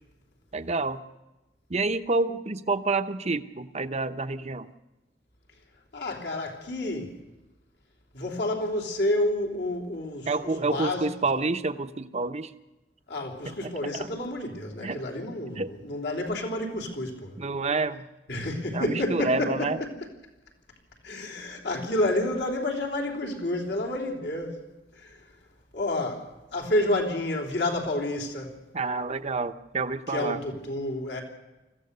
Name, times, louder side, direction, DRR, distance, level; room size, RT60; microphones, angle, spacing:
voice 1, 0.5-1.0 1.7-4.7 10.3-12.5 13.4-14.1 14.8-15.0 15.6-15.7 17.4-18.0 18.7-19.8 28.7-30.4, right 3 dB, 40° right, 0.9 m, -28 dB
voice 2, 5.9-7.2 8.1-11.0 13.1-17.4 18.3-19.9 21.0-24.6 24.9-25.3 25.7-28.6 30.1-31.2, left 1 dB, 70° left, 3.3 m, -29 dB
25.0 x 15.0 x 6.7 m
head